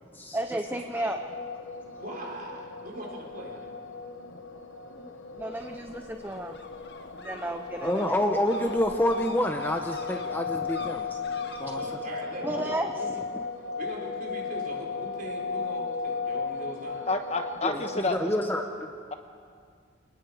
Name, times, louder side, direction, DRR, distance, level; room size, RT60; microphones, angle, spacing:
voice 1, 0.3-1.2 5.0-6.5 7.2-8.2 10.5-11.4 11.7-11.8 12.4-13.2, right 1 dB, 10° right, 6 dB, 0.5 m, -34 dB
sound 1, 0.6-18.0, left 5 dB, 90° left, 1.0 m, -36 dB
voice 2, 2.0-3.7 11.6-13.2 13.8-17.1, right 1 dB, 45° right, -2 dB, 4.5 m, -41 dB
sound 2, 5.5-11.9, left 2 dB, 60° left, 1.8 m, -47 dB
voice 3, 7.8-11.2 11.6-11.8 17.6-18.9, left 1 dB, 10° left, 4 dB, 0.9 m, -28 dB
voice 4, 17.1-18.3, left 2 dB, 35° left, 6 dB, 1.2 m, -29 dB
28.5 x 19.5 x 5.0 m, 2.1 s
head